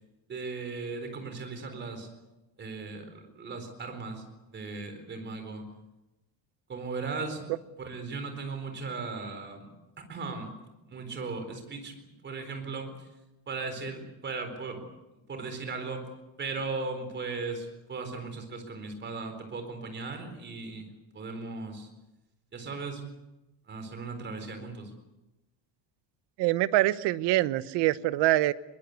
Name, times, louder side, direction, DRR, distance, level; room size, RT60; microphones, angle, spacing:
voice 1, 0.3-2.1 2.6-5.6 6.7-7.5 7.8-9.7 10.1-10.6 10.9-12.0 12.2-13.1 13.5-14.8 15.3-16.1 16.4-20.9 21.1-21.9 22.5-23.0 23.7-24.9, right 4 dB, 25° right, 6 dB, 4.2 m, -37 dB
voice 2, 26.4-28.5, right 16 dB, 70° right, 15 dB, 1.0 m, -24 dB
22.5 x 20.5 x 8.3 m, 1.0 s
cardioid pair, 180°, 42 cm